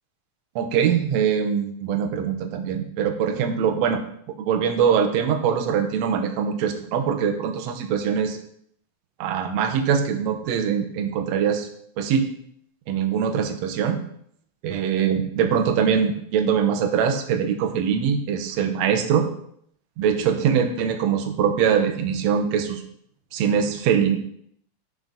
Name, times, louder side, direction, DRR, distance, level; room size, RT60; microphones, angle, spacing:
voice 1, 0.6-4.0 4.4-8.4 9.2-11.7 12.0-12.3 12.9-14.0 14.6-19.3 20.0-22.8 23.3-24.2, right 7 dB, 70° right, 6 dB, 1.8 m, -22 dB
6.1 x 6.0 x 5.2 m, 0.67 s
omnidirectional pair, 3.6 m